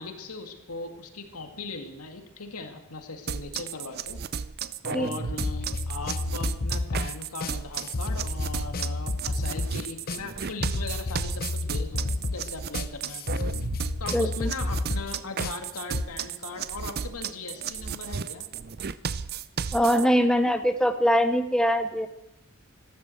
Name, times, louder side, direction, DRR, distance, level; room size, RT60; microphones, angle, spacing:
voice 1, 0.0-4.2 4.8-13.5 14.0-18.5, left 3 dB, 85° left, 5 dB, 2.1 m, -39 dB
sound 1, 3.3-20.1, right 6 dB, 45° right, 0.5 m, -34 dB
sound 2, 5.4-16.1, left 2 dB, 40° left, 0.7 m, -31 dB
voice 2, 14.1-14.5 19.7-22.1, equal, 5° left, 8 dB, 0.7 m, -23 dB
14.0 x 12.5 x 7.8 m, 0.86 s
head